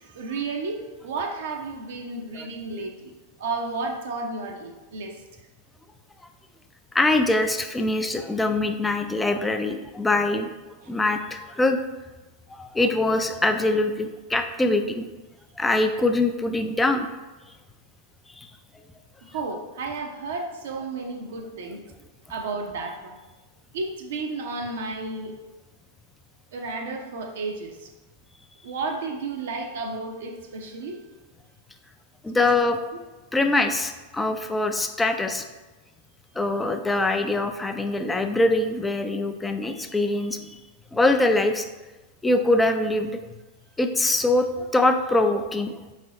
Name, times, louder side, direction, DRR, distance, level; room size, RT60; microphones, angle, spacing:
voice 1, 0.0-3.1 3.4-5.2 10.8-10.9 19.3-21.8 22.3-23.2 23.7-25.3 26.5-27.9 28.6-31.0 32.4-32.6, right 3 dB, 55° right, 3 dB, 0.5 m, -32 dB
voice 2, 6.9-11.8 12.5-15.1 15.6-17.1 18.4-18.5 32.2-32.8 33.3-35.5 36.4-40.5 40.9-41.7 42.2-43.2 43.8-45.8, left 2 dB, 10° left, 7 dB, 0.3 m, -23 dB
5.2 x 3.2 x 2.8 m, 1.2 s
figure-of-eight pair, 90°, 0 cm